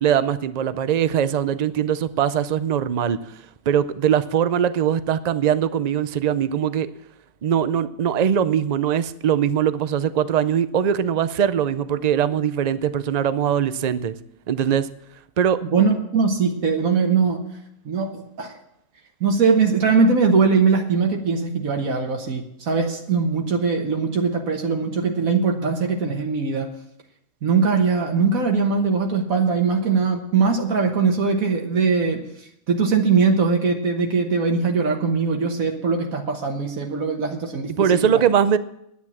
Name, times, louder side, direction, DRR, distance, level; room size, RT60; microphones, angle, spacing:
voice 1, 0.0-3.2 3.7-6.9 7.4-14.1 14.5-14.9 15.4-15.6 37.7-38.6, right 9 dB, 60° right, 13 dB, 0.4 m, -21 dB
voice 2, 15.7-17.4 17.8-18.5 19.2-26.7 27.4-32.2 32.7-38.1, right 5 dB, 80° right, 2 dB, 1.7 m, -21 dB
10.5 x 9.6 x 7.2 m, 0.78 s
omnidirectional pair, 1.4 m